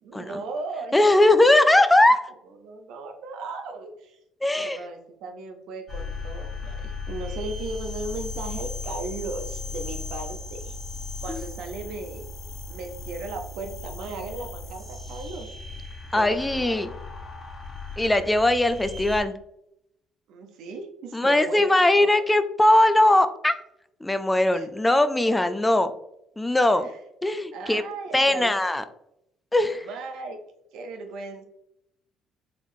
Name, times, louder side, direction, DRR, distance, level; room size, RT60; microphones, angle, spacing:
voice 1, 0.0-1.4 2.6-4.2 4.6-10.8 11.2-12.3 12.7-15.5 16.1-17.0 20.3-21.6 21.9-22.3 24.5-24.7 26.7-27.0 27.5-28.6 29.8-30.4 30.7-31.4, right 3 dB, 75° right, 5 dB, 0.7 m, -37 dB
voice 2, 0.9-2.2 4.4-4.8 11.3-11.4 16.1-16.9 18.0-19.3 21.1-23.5 24.0-25.9 26.4-26.9 27.2-27.8 28.1-28.8 29.5-29.9, left 1 dB, 15° left, 11 dB, 0.4 m, -20 dB
sound 1, 5.9-19.2, left 4 dB, 45° left, 1.3 m, -36 dB
4.0 x 3.4 x 2.6 m, 0.78 s
supercardioid pair, 65°, 0 cm